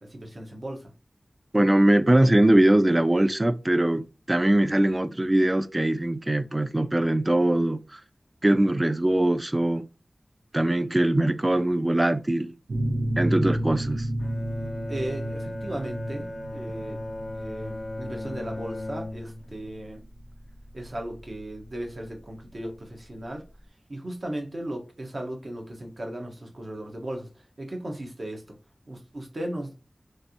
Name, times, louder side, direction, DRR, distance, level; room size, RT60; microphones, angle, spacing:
voice 1, 0.0-0.9 14.9-17.0 17.3-20.0 20.7-23.4 23.9-27.3 27.6-28.4 28.9-29.7, right 1 dB, 60° right, 1.0 m, -36 dB
voice 2, 1.5-8.0 8.4-9.8 10.5-12.5 13.2-14.1, right 1 dB, 30° right, 0.3 m, -22 dB
sound 1, 12.7-22.1, right 1 dB, 85° right, 0.5 m, -32 dB
Bowed string instrument, 14.2-19.7, left 1 dB, 85° left, 0.5 m, -37 dB
3.2 x 2.5 x 2.8 m
wide cardioid pair, 55°, 0 cm